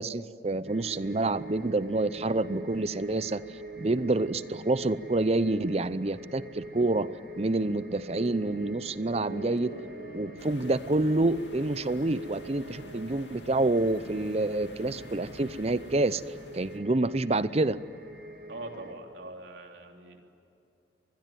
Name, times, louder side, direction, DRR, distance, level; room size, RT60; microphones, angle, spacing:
voice 1, 0.0-3.4 3.8-9.7 10.1-16.2 16.5-17.8, right 2 dB, 35° right, 16 dB, 0.6 m, -28 dB
sound 1, 0.6-18.9, right 1 dB, 55° right, 2.8 m, -44 dB
sound 2, 8.1-13.3, equal, 60° left, 4.6 m, -47 dB
sound 3, 10.4-16.8, left 1 dB, 80° left, 2.2 m, -49 dB
voice 2, 18.5-20.2, right 2 dB, 80° right, 3 dB, 3.2 m, -42 dB
25.5 x 21.0 x 9.2 m, 2.6 s
head